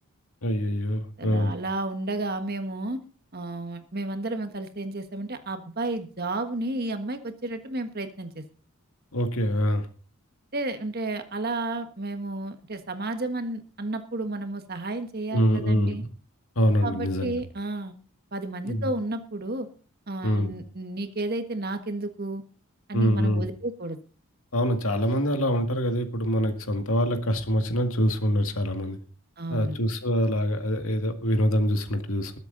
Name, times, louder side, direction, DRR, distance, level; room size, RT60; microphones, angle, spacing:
voice 1, 0.4-1.5 9.1-9.9 15.3-16.1 16.6-17.4 18.6-18.9 20.2-20.5 22.9-23.5 24.5-29.0 29.5-32.4, equal, 70° left, 6 dB, 2.1 m, -25 dB
voice 2, 1.2-3.0 3.3-8.4 10.5-16.0 16.8-18.0 18.3-19.7 20.1-22.4 22.9-24.0 29.4-29.8, right 2 dB, 45° right, 8 dB, 1.5 m, -32 dB
20.5 x 8.2 x 4.0 m, 0.39 s
head